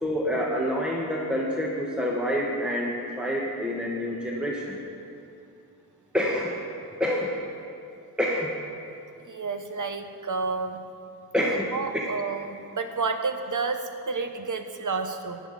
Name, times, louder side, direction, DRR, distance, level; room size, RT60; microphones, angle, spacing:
voice 1, 0.0-4.8 6.1-6.5 7.0-7.3 8.2-8.5 11.3-11.7 11.9-12.1, equal, ahead, -3 dB, 1.6 m, -27 dB
voice 2, 9.2-10.8 11.4-15.4, right 4 dB, 50° right, 7 dB, 1.1 m, -30 dB
14.5 x 11.0 x 4.3 m, 2.6 s
cardioid pair, 60°, 39 cm